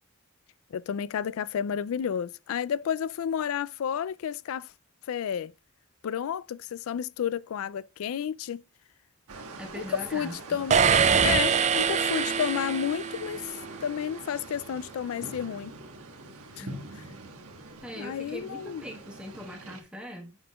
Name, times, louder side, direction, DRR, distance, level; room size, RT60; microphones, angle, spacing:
voice 1, 0.7-4.7 5.1-5.5 6.0-8.6 9.7-10.8 11.2-15.7 16.6-16.7 18.0-18.8, left 8 dB, 70° left, 0.3 m, -31 dB
sound 1, 9.3-19.8, right 2 dB, 90° right, 1.2 m, -44 dB
voice 2, 9.6-10.6 16.6-16.9 17.8-20.4, equal, 5° right, 1.2 m, -41 dB
sound 2, 10.7-13.5, right 6 dB, 30° right, 0.3 m, -24 dB
7.8 x 6.1 x 2.3 m
head